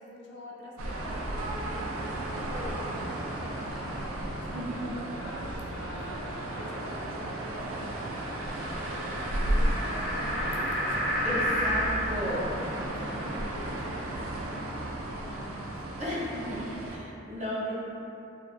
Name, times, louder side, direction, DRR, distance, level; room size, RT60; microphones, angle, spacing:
voice 1, 0.0-2.0 2.3-4.6 4.9-6.2 6.5-9.0 9.4-11.0 11.8-15.9 17.0-17.1, left 1 dB, 60° left, -4 dB, 0.4 m, -46 dB
sound 1, 0.8-17.0, right 1 dB, 85° right, 0.3 m, -34 dB
sound 2, 5.3-11.9, equal, ahead, 0.8 m, -33 dB
voice 2, 11.2-12.5 16.0-16.6 16.9-17.7, left 1 dB, 35° right, -10 dB, 0.6 m, -34 dB
2.6 x 2.1 x 2.5 m, 2.8 s
head